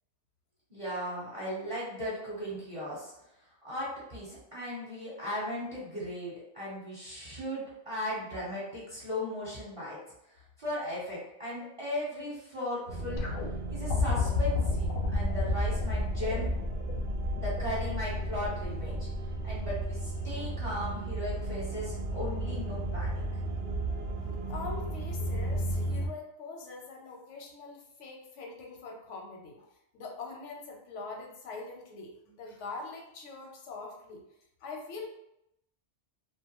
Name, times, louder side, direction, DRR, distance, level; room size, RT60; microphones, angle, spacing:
voice 1, 0.7-3.1 3.6-10.0 10.3-13.3 13.7-16.5 17.3-19.1 19.4-23.2, left 1 dB, 30° right, -9 dB, 0.8 m, -37 dB
sound 1, 12.9-26.1, right 2 dB, 65° right, 0.7 m, -34 dB
pistol pew, 13.2-20.3 21.5-21.6, left 5 dB, 60° left, 0.6 m, -34 dB
voice 2, 24.5-29.7 29.9-34.2 34.6-35.1, left 3 dB, 85° left, 0 dB, 1.0 m, -43 dB
2.4 x 2.3 x 2.9 m, 0.81 s
omnidirectional pair, 1.2 m